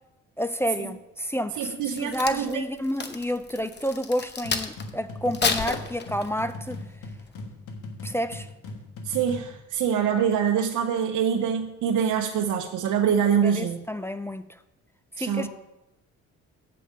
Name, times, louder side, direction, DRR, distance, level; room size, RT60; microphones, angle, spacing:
voice 1, 0.4-6.8 8.0-8.5 13.4-14.5 15.2-15.5, equal, 10° left, 0.4 m, -29 dB
voice 2, 1.6-2.6 9.0-13.8 15.2-15.5, right 8 dB, 80° right, 0.8 m, -25 dB
Crack, 1.8-4.9 5.3-6.5 7.0-7.3, left 5 dB, 35° left, 0.9 m, -30 dB
sound 1, 4.4-9.6, left 2 dB, 85° left, 1.4 m, -39 dB
7.7 x 5.1 x 7.3 m
cardioid pair, 90°, 30 cm